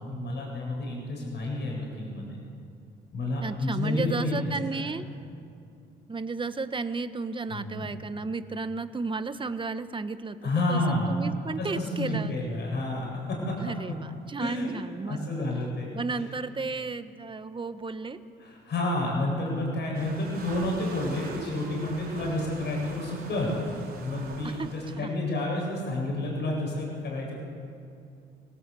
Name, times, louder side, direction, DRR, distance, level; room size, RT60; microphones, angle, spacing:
voice 1, 0.0-2.4 3.1-4.4 4.7-4.8 7.5-7.9 10.4-11.2 11.6-13.6 14.4-14.7 15.1-16.2 18.4-27.4, left 2 dB, 60° left, -1 dB, 7.8 m, -30 dB
voice 2, 3.4-5.1 6.1-10.8 11.1-12.4 13.6-15.5 15.9-18.2 24.4-24.7 25.0-25.1, right 4 dB, 25° right, 10 dB, 1.2 m, -33 dB
sound 1, 19.9-25.0, right 4 dB, 50° right, 4.0 m, -43 dB
27.0 x 18.0 x 8.5 m, 2.5 s
cardioid pair, 90°, 20 cm